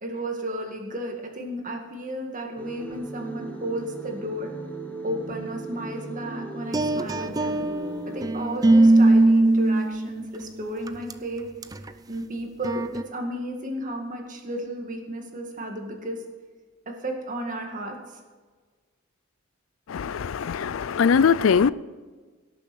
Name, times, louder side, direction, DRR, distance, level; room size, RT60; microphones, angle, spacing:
voice 1, 0.0-4.5 5.0-7.7 8.1-11.5 12.1-16.2 16.9-18.0, right 1 dB, 40° right, 2.0 m, -33 dB
sound 1, 2.6-8.3, right 2 dB, 10° left, 1.2 m, -37 dB
sound 2, 6.7-10.3 10.9-11.1 11.6-11.9 12.6-13.0, right 2 dB, 20° right, 0.5 m, -20 dB
voice 2, 19.9-21.7, left 6 dB, 80° left, 0.4 m, -21 dB
17.5 x 7.1 x 6.2 m
head